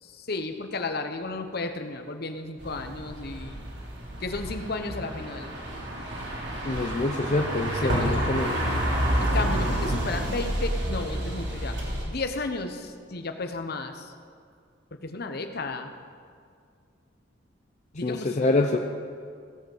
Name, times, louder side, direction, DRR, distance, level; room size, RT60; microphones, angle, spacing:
voice 1, 0.0-3.7 4.2-5.6 7.8-8.5 9.2-11.7 12.1-14.1 14.9-15.9 17.9-18.4, left 3 dB, 55° left, 6 dB, 1.0 m, -33 dB
sound 1, 2.6-12.0, right 1 dB, 65° right, 3.4 m, -29 dB
voice 2, 6.6-8.6 18.0-18.8, left 2 dB, 40° left, 3 dB, 0.6 m, -26 dB
16.5 x 7.9 x 7.3 m, 2.2 s
head